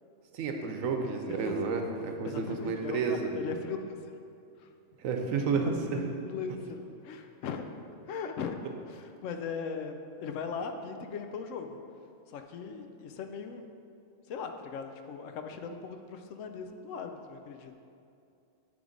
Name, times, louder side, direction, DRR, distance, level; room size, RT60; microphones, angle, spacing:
voice 1, 0.3-3.4 5.0-6.1, right 4 dB, 90° right, 3 dB, 1.1 m, -31 dB
voice 2, 2.2-4.2 4.6-4.7 5.5-7.6 8.1-8.6 8.9-10.0 10.2-11.8 12.3-13.6 14.3-17.7, left 5 dB, 75° left, 6 dB, 0.9 m, -39 dB
9.4 x 3.4 x 5.1 m, 2.6 s
omnidirectional pair, 1.4 m